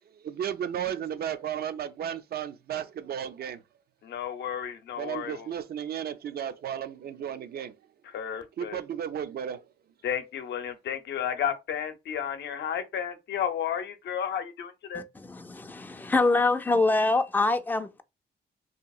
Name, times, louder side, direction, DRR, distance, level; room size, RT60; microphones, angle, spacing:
voice 1, 0.2-3.6 5.0-7.7 8.6-9.6, right 9 dB, 60° right, 0.4 m, -34 dB
voice 2, 4.0-5.5 8.0-8.8 10.0-15.0, left 8 dB, 85° left, 0.6 m, -32 dB
voice 3, 14.9-18.0, left 3 dB, 10° left, 0.3 m, -25 dB
2.8 x 2.7 x 2.3 m
cardioid pair, 100°, 18 cm